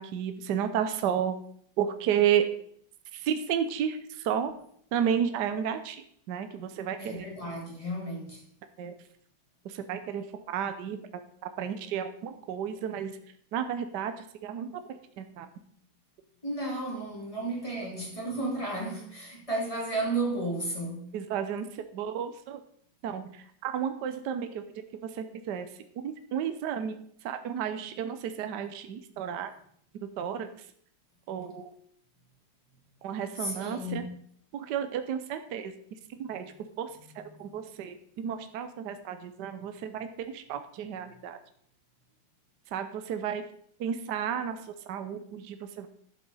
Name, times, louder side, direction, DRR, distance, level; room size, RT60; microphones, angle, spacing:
voice 1, 0.0-1.3 1.8-2.4 3.1-4.0 4.2-4.5 4.9-7.3 8.8-8.9 9.6-11.0 11.6-13.2 13.5-14.1 14.4-14.7 15.2-15.5 21.1-21.7 21.9-22.6 23.0-24.6 25.1-25.7 26.0-27.0 27.2-29.5 30.2-30.5 31.3-31.7 33.0-34.0 34.5-35.7 36.2-36.5 36.8-36.9 37.2-40.0 40.3-41.4 42.7-43.4 43.8-44.6 44.9-45.9, right 8 dB, 70° right, 1.3 m, -32 dB
voice 2, 7.0-8.4 16.4-21.1 33.4-34.0 37.0-37.5, right 2 dB, 15° left, 2.6 m, -33 dB
11.5 x 7.8 x 4.1 m
omnidirectional pair, 2.0 m